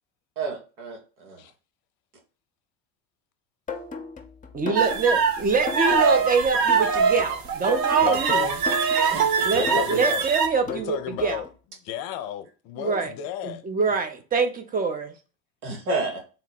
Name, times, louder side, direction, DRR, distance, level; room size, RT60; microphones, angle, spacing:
voice 1, 0.4-1.4 9.1-9.6 15.6-16.2, right 3 dB, 80° right, 1.4 m, -30 dB
sound 1, 3.7-11.5, left 3 dB, 20° left, 0.8 m, -37 dB
voice 2, 4.5-8.5 9.4-11.4 12.8-13.1 13.4-15.1, right 5 dB, 20° right, 0.7 m, -25 dB
sound 2, 4.8-10.5, right 5 dB, 50° right, 0.7 m, -23 dB
voice 3, 8.0-8.6 9.5-10.2 10.7-11.5 11.8-13.6, left 10 dB, 50° left, 0.6 m, -32 dB
4.0 x 2.1 x 4.1 m
hypercardioid pair, 75°, 44 cm